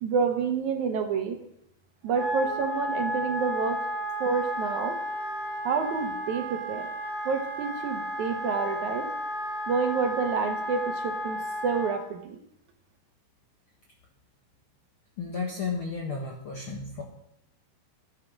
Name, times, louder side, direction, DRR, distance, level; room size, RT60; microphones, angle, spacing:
voice 1, 0.0-1.4 2.0-3.8 4.2-5.0 5.6-6.9 7.3-9.1 9.7-12.4, right 5 dB, 65° right, 5 dB, 2.2 m, -28 dB
Wind instrument woodwind instrument, 2.0-11.9, equal, 15° right, 4.5 m, -33 dB
voice 2, 15.2-17.0, left 4 dB, 55° left, 0 dB, 1.5 m, -33 dB
15.0 x 8.6 x 6.4 m, 0.76 s
omnidirectional pair, 4.4 m